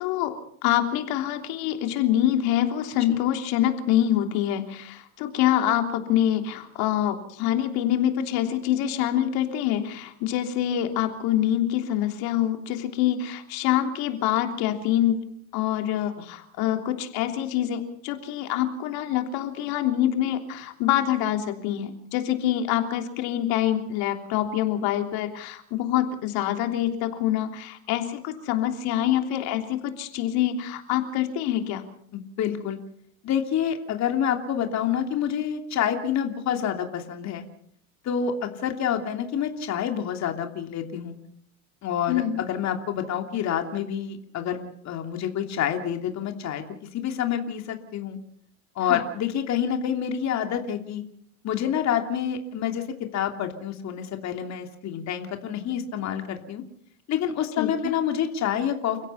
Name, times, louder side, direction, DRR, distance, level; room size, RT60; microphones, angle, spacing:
voice 1, 0.0-15.2 15.5-31.8 42.1-42.4 48.9-49.0 57.6-57.7, left 11 dB, 55° left, 5 dB, 3.3 m, -25 dB
voice 2, 32.1-32.8 33.2-37.4 38.0-41.1 41.8-46.6 46.9-48.2 48.8-51.0 51.4-52.8 53.1-56.6 57.1-59.0, left 9 dB, 35° left, 5 dB, 2.9 m, -28 dB
29.5 x 16.5 x 5.7 m, 0.64 s
hypercardioid pair, 105°, 45 cm